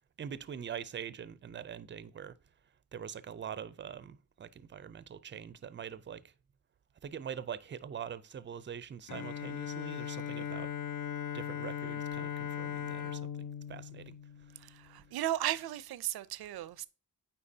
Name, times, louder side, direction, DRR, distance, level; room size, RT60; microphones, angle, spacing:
voice 1, 0.2-2.4 2.9-6.2 7.0-10.7 11.3-14.2, right 8 dB, 30° right, 0.4 m, -43 dB
Bowed string instrument, 9.1-15.0, left 9 dB, 60° left, 0.6 m, -39 dB
voice 2, 15.1-16.9, right 13 dB, 85° right, 0.5 m, -34 dB
8.6 x 4.4 x 2.7 m
cardioid pair, 90°, 36 cm